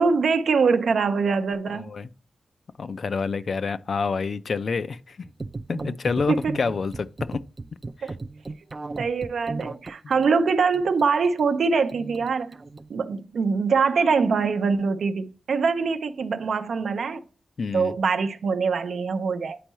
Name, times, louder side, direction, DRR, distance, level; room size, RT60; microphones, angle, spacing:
voice 1, 0.0-1.9 6.3-6.5 8.0-8.1 9.0-12.6 12.9-17.2 17.7-19.6, right 5 dB, 80° right, 0.6 m, -23 dB
voice 2, 1.7-2.1 2.8-5.3 5.7-7.4 17.6-17.9, left 5 dB, 55° left, 0.4 m, -28 dB
sound 1, 5.3-12.9, right 3 dB, 30° right, 0.4 m, -36 dB
10.0 x 4.5 x 3.0 m
wide cardioid pair, 125°, 0 cm